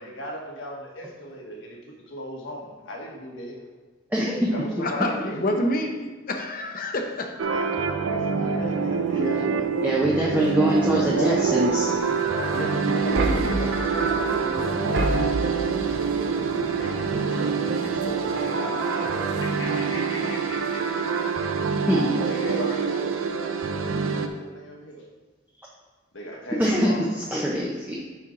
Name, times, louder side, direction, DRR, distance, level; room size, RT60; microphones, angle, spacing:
voice 1, 0.0-3.6 4.5-5.8 7.5-9.3 10.2-11.7 12.1-14.5 15.8-16.1 16.8-19.1 19.4-21.5 22.1-25.1 26.1-27.1, equal, 70° left, -1 dB, 1.5 m, -38 dB
voice 2, 4.1-4.5 9.8-11.9 21.9-22.1 26.6-26.9 27.3-27.9, equal, 10° right, -4 dB, 0.7 m, -23 dB
voice 3, 4.8-7.4 8.6-8.7 9.1-10.4 12.5-15.0, left 1 dB, 45° left, 4 dB, 0.8 m, -30 dB
sound 1, 7.4-24.3, right 5 dB, 90° right, 0.6 m, -26 dB
sound 2, 8.4-20.8 21.1-21.4, right 2 dB, 55° right, 0.7 m, -34 dB
10.0 x 4.5 x 3.8 m, 1.3 s
head